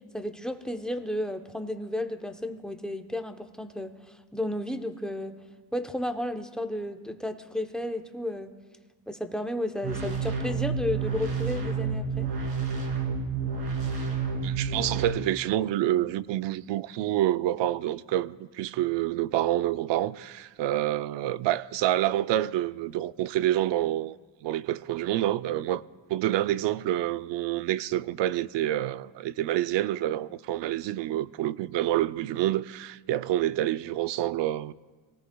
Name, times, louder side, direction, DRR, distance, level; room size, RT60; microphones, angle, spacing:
voice 1, 0.1-5.4 5.7-8.6 9.1-12.3, left 1 dB, ahead, 0.8 m, -33 dB
sound 1, 9.8-15.1, right 5 dB, 50° right, 2.8 m, -29 dB
voice 2, 14.4-24.2 24.4-25.8 26.1-34.7, right 13 dB, 70° right, 0.5 m, -27 dB
26.0 x 18.0 x 2.3 m
cardioid pair, 120°, 45 cm